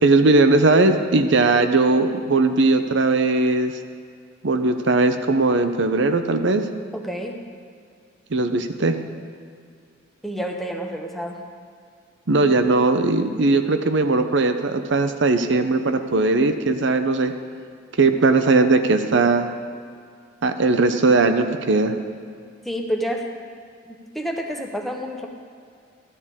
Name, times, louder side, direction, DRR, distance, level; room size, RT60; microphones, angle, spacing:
voice 1, 0.0-3.8 4.4-6.7 8.3-9.0 12.3-17.3 18.0-19.5 20.4-21.9, right 3 dB, 65° right, 8 dB, 0.8 m, -19 dB
voice 2, 6.9-7.4 10.2-11.4 22.6-23.3 23.9-25.3, equal, ahead, 1 dB, 0.9 m, -29 dB
13.5 x 13.5 x 3.7 m, 2.3 s
head